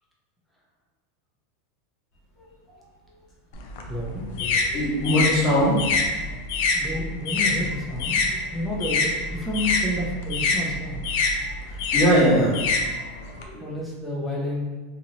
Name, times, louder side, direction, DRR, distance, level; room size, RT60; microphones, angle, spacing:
sound 1, 3.5-8.3 8.6-13.4, left 3 dB, 55° left, 0.4 m, -25 dB
voice 1, 3.8-4.3 6.7-8.2 8.5-11.0 13.6-14.6, left 1 dB, 5° left, -4 dB, 0.5 m, -30 dB
voice 2, 4.7-5.8 11.7-12.6 13.4-13.6, equal, 30° left, -8 dB, 1.2 m, -20 dB
2.9 x 2.7 x 2.7 m, 1.3 s
supercardioid pair, 175°, 0 cm